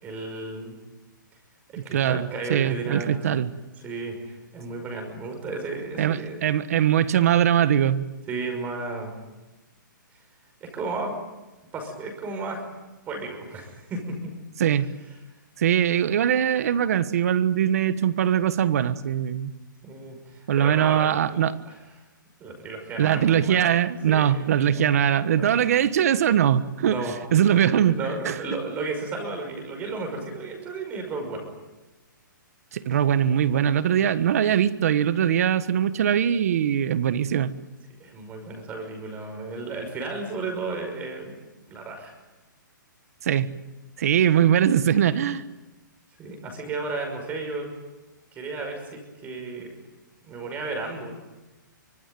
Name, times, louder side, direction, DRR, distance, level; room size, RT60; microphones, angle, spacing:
voice 1, 0.0-0.8 1.7-3.4 3.8-6.4 8.3-9.1 10.6-11.1 11.7-12.6 13.1-14.3 19.8-21.8 22.4-23.7 24.1-24.4 24.7-24.9 25.3-25.6 26.8-27.1 27.8-31.5 34.0-34.1 38.0-41.4 41.7-42.1 46.2-47.7 48.3-49.8 50.2-51.1, right 3 dB, 15° right, 3 dB, 5.7 m, -33 dB
voice 2, 1.9-3.5 6.0-8.1 14.6-14.9 15.6-19.5 20.5-21.5 23.0-27.0 27.3-28.0 28.2-28.4 32.7-37.5 43.2-43.5 44.0-45.4, right 9 dB, 45° right, 13 dB, 1.5 m, -21 dB
24.5 x 24.5 x 9.3 m, 1.1 s
hypercardioid pair, 165°, 11 cm